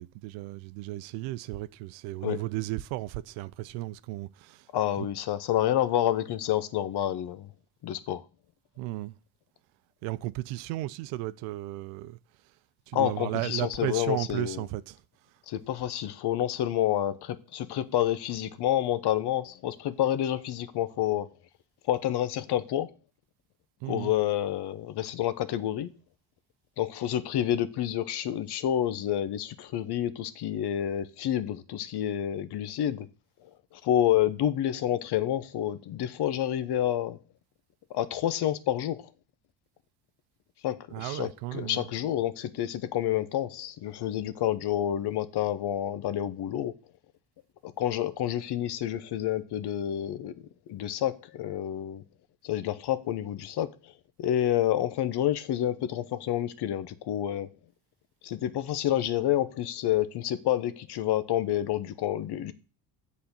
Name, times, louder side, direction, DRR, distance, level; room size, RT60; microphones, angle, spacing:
voice 1, 0.0-4.7 5.0-5.1 8.8-9.2 10.0-12.2 12.9-15.0 23.8-24.1 40.9-41.9, right 17 dB, 85° right, 0.6 m, -34 dB
voice 2, 4.7-7.5 7.8-8.2 12.9-14.6 15.5-21.3 21.9-22.9 23.9-25.9 26.8-33.1 33.7-37.2 37.9-39.1 40.6-46.7 47.6-50.3 50.7-52.0 52.4-53.9 54.2-57.5 58.2-62.5, left 12 dB, 55° left, 0.9 m, -29 dB
7.8 x 4.3 x 7.0 m
supercardioid pair, 85°, 47 cm